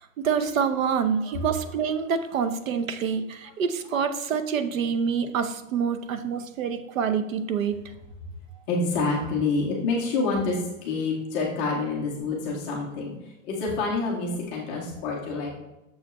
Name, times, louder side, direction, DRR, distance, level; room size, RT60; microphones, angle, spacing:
voice 1, 0.2-7.8, right 6 dB, 80° right, 10 dB, 0.9 m, -26 dB
voice 2, 8.7-13.1 13.4-15.5, left 3 dB, 10° left, -4 dB, 0.3 m, -27 dB
6.7 x 6.5 x 3.0 m, 0.96 s
supercardioid pair, 160°, 40 cm